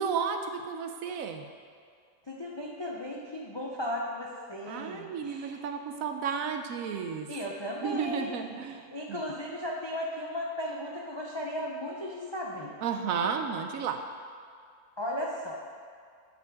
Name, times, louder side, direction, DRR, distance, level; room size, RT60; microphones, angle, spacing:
voice 1, 0.0-1.4 4.7-7.3 7.8-8.8 9.1-9.2 12.8-14.0, right 6 dB, 70° right, 6 dB, 1.0 m, -32 dB
voice 2, 2.3-5.6 7.3-12.7 15.0-15.5, left 1 dB, 40° left, -2 dB, 0.3 m, -36 dB
7.9 x 7.9 x 3.5 m, 2.1 s
omnidirectional pair, 1.6 m